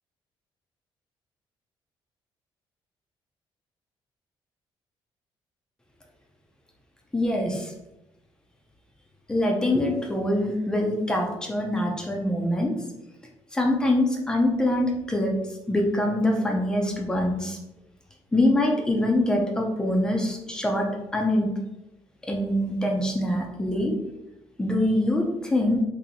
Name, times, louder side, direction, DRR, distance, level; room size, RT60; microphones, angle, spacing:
voice 1, 7.1-7.7 9.3-12.7 13.5-15.3 15.7-17.6 18.3-21.5 22.3-23.9 24.6-25.8, left 1 dB, 10° left, 0 dB, 0.5 m, -24 dB
2.8 x 2.7 x 4.0 m, 0.93 s
cardioid pair, 175°, 9 cm